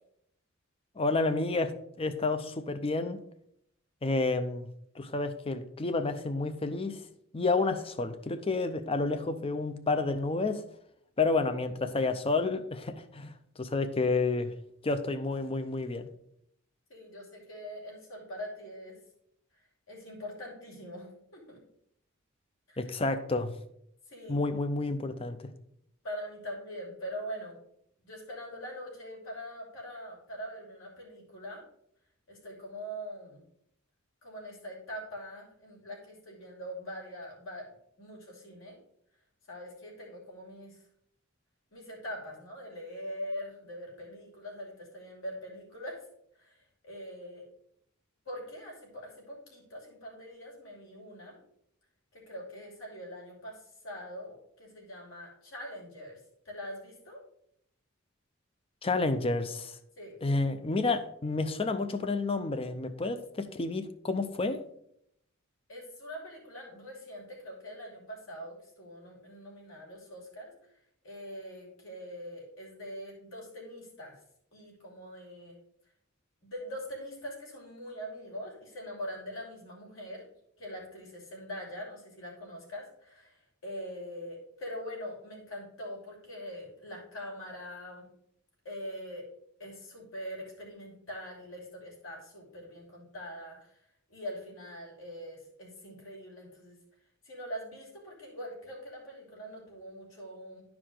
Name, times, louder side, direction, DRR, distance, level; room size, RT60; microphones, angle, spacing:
voice 1, 1.0-3.2 4.0-4.7 5.0-7.0 7.3-10.6 11.2-13.3 13.6-14.5 14.8-16.1 22.8-23.5 24.3-25.4 58.8-59.7 60.2-64.6, left 3 dB, 30° left, 10 dB, 0.6 m, -30 dB
voice 2, 16.9-19.0 19.9-21.6 22.7-22.9 24.1-24.4 26.0-27.6 28.0-31.6 32.3-33.4 34.2-37.7 38.0-38.8 39.5-40.8 41.7-46.0 46.4-47.4 48.2-51.4 52.1-56.2 56.4-57.2 60.0-60.2 65.7-70.5 71.0-74.2 74.5-75.6 76.4-80.3 80.6-88.0 88.6-89.2 89.6-93.8 94.1-96.8 97.2-100.6, equal, 70° left, -2 dB, 2.9 m, -43 dB
11.0 x 4.8 x 3.8 m, 0.72 s
head